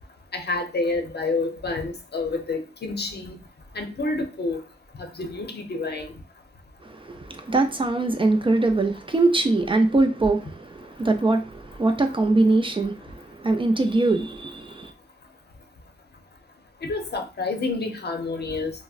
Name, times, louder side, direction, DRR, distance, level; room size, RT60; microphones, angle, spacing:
voice 1, 0.3-3.4 3.7-4.6 5.2-6.1 16.8-18.7, left 3 dB, 60° left, 0.7 m, -28 dB
voice 2, 7.0-14.9, right 2 dB, 25° right, 0.4 m, -22 dB
3.5 x 2.0 x 2.4 m
wide cardioid pair, 95°, 19 cm